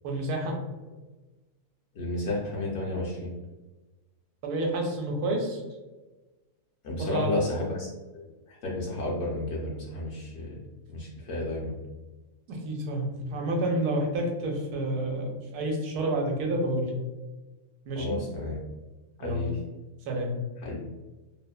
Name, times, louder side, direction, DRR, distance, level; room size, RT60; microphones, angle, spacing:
voice 1, 0.0-0.6 4.4-5.6 7.0-7.4 12.5-16.9 17.9-18.2 19.2-19.4 20.1-20.3, right 1 dB, 85° right, 2 dB, 1.1 m, -29 dB
voice 2, 1.9-3.3 6.8-10.6 10.9-11.8 18.0-18.6 19.2-19.6 20.6-20.8, left 1 dB, 65° left, -4 dB, 0.8 m, -32 dB
2.8 x 2.1 x 2.2 m, 1.2 s
omnidirectional pair, 1.6 m